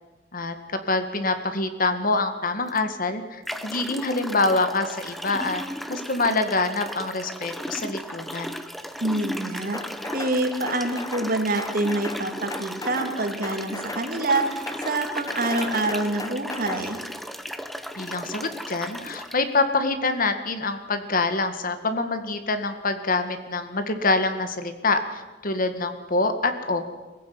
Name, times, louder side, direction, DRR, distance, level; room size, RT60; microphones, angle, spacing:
voice 1, 0.3-5.6 5.9-8.5 18.0-26.9, left 3 dB, 50° left, 8 dB, 2.0 m, -25 dB
sound 1, 2.7-2.8 3.5-19.4, equal, ahead, 1.1 m, -36 dB
voice 2, 9.0-9.8 10.1-17.0, right 2 dB, 50° right, 5 dB, 3.0 m, -26 dB
sound 2, 9.7-10.4 10.7-11.3 11.6-12.2 12.5-13.1 13.4-14.1 14.3-15.0 15.3-16.8, left 2 dB, 20° left, 1.5 m, -35 dB
22.5 x 15.5 x 9.6 m, 1.2 s
head